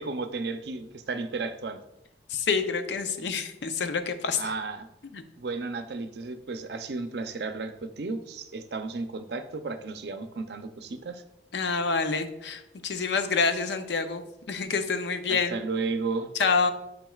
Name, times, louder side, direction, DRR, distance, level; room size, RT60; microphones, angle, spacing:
voice 1, 0.0-1.8 4.4-4.9 5.4-11.2 15.3-16.3, right 3 dB, 65° right, 9 dB, 0.5 m, -33 dB
voice 2, 2.3-4.5 5.1-5.2 11.5-14.2 14.5-15.6 16.4-16.7, left 5 dB, 75° left, 8 dB, 0.6 m, -27 dB
9.0 x 5.1 x 2.3 m, 0.88 s
head